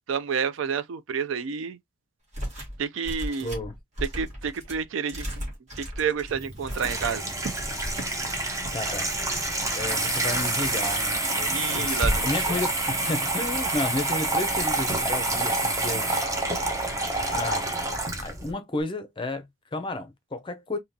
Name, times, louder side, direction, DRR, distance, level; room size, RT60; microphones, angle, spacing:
voice 1, 0.1-1.8 2.8-3.5 4.0-5.4 5.8-7.2 11.5-12.3, right 6 dB, 75° right, 0.4 m, -29 dB
sound 1, 2.3-2.8 3.0-7.5 7.9-8.1 8.4-8.8 9.3-10.0 10.4-11.0 11.5-11.9 12.2-12.8, right 1 dB, 35° right, 1.8 m, -37 dB
voice 2, 3.4-3.7 8.7-9.1 9.7-16.1 17.3-17.7 18.2-20.8, left 2 dB, 25° left, 0.5 m, -32 dB
Water tap faucet / Sink (filling or washing), 6.3-18.5, right 2 dB, 15° right, 0.6 m, -27 dB
3.7 x 2.7 x 2.7 m
head